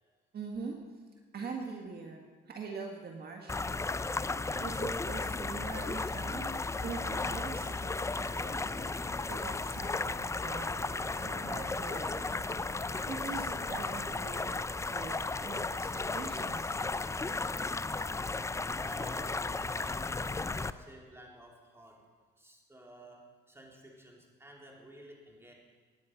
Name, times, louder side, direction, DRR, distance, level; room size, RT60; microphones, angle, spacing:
voice 1, 0.3-0.8 1.3-3.8 4.6-6.5 6.8-8.9 9.3-12.4 13.1-16.8, right 4 dB, 50° right, 2 dB, 1.8 m, -43 dB
sound 1, 3.5-20.7, left 3 dB, 15° left, 0.5 m, -35 dB
sound 2, 9.0-14.5, right 2 dB, 35° right, 3.6 m, -57 dB
voice 2, 18.8-22.0 22.4-23.2 23.5-25.5, right 1 dB, 10° right, -1 dB, 3.8 m, -52 dB
18.5 x 9.7 x 5.9 m, 1.5 s
cardioid pair, 90°, 20 cm